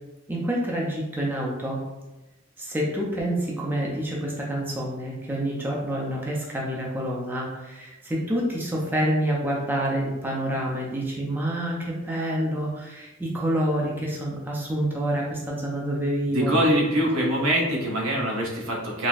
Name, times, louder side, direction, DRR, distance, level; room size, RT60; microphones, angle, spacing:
voice 1, 0.3-1.8 2.6-16.5, right 1 dB, 10° right, -3 dB, 0.4 m, -27 dB
voice 2, 16.3-19.1, equal, 90° right, -2 dB, 0.8 m, -23 dB
3.9 x 2.1 x 2.4 m, 1.0 s
head